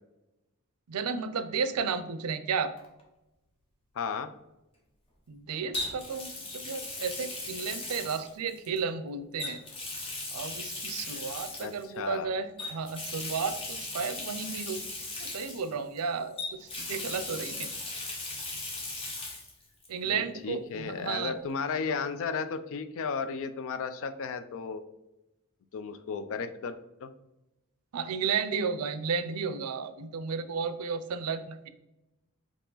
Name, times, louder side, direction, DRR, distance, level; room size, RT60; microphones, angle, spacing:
voice 1, 0.9-2.7 5.3-9.6 10.3-14.9 15.2-17.7 19.9-21.3 27.9-31.7, right 5 dB, 75° right, 12 dB, 0.4 m, -33 dB
Water tap faucet, 2.8-3.0 5.7-8.8 9.4-11.9 12.6-16.0 16.4-19.5 19.8-19.9 21.5-21.6, left 2 dB, 25° left, 1.0 m, -38 dB
voice 2, 3.9-4.3 11.6-12.3 20.1-24.8 25.7-26.8 27.0-27.1, left 5 dB, 65° left, 10 dB, 0.4 m, -34 dB
4.6 x 2.9 x 3.9 m, 0.95 s
head